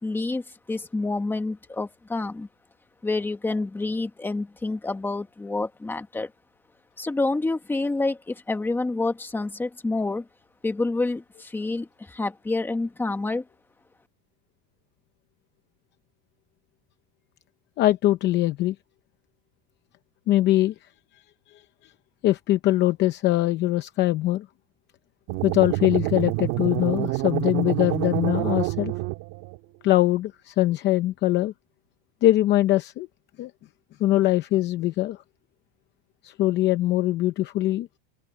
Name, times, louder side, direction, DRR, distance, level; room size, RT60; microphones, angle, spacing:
voice 1, 0.0-2.5 3.0-6.3 7.0-10.3 10.6-13.4, left 2 dB, 5° left, 1.3 m, -28 dB
voice 2, 17.8-18.7 20.3-20.7 22.2-24.5 25.4-28.9 29.8-31.5 32.2-33.1 33.4-33.5 34.0-35.2 36.2-37.9, left 15 dB, 30° left, 0.7 m, -22 dB
sound 1, 25.3-29.6, right 21 dB, 55° right, 2.2 m, -27 dB
open air
cardioid pair, 170°, 35 cm